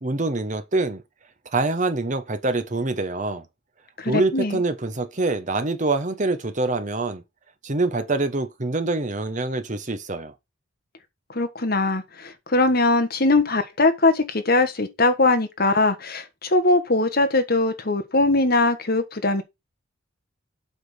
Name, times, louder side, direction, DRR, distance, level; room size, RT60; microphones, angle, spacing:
voice 1, 0.0-1.0 1.5-3.4 4.0-7.2 7.6-10.3, right 2 dB, 35° right, 1.0 m, -25 dB
voice 2, 4.0-4.6 11.3-19.4, left 2 dB, 45° left, 1.4 m, -21 dB
8.1 x 3.8 x 6.4 m
head